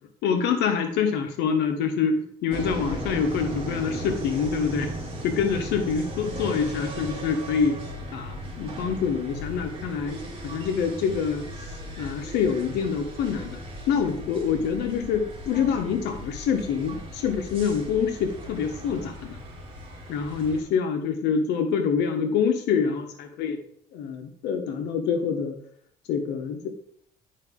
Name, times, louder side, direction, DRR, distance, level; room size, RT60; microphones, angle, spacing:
voice 1, 0.2-4.9 5.2-7.8 8.1-13.6 13.9-19.4 20.1-23.6 23.9-25.6 26.1-26.7, left 6 dB, 85° left, 6 dB, 1.2 m, -26 dB
sound 1, 2.5-20.6, equal, 30° right, 2.7 m, -37 dB
9.0 x 5.2 x 3.7 m, 0.64 s
cardioid pair, 110°, 17 cm